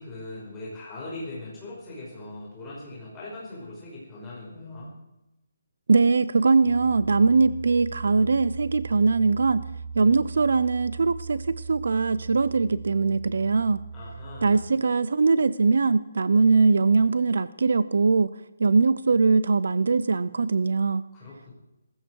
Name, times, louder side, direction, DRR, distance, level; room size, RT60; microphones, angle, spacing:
voice 1, 0.0-4.9 13.9-14.6 21.1-21.5, left 2 dB, 10° left, -6 dB, 5.1 m, -40 dB
voice 2, 5.9-9.6 9.9-13.8 14.4-18.3 18.6-21.0, right 4 dB, 60° right, 17 dB, 0.6 m, -21 dB
Piano, 6.6-14.7, right 5 dB, 35° right, 1.2 m, -38 dB
18.0 x 15.5 x 4.7 m, 0.93 s
hypercardioid pair, 180°, 0 cm